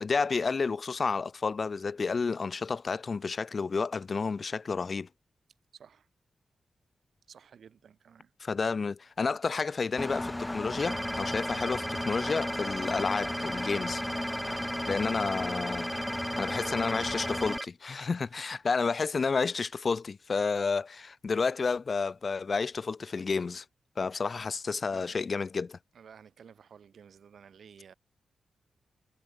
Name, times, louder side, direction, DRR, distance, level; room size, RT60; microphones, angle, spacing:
voice 1, 0.0-5.1 8.4-14.0 14.9-15.9 16.4-23.6 24.0-25.8, left 4 dB, 45° left, 1.0 m, -30 dB
voice 2, 5.7-6.1 7.3-8.3 15.1-15.3 16.3-17.0 24.9-25.3 25.9-27.9, right 7 dB, 75° right, 6.6 m, -53 dB
Engine, 10.0-17.6, left 1 dB, 15° left, 0.3 m, -35 dB
sound 1, 10.8-17.7, right 1 dB, 10° right, 0.8 m, -37 dB
cardioid pair, 90°, 0 cm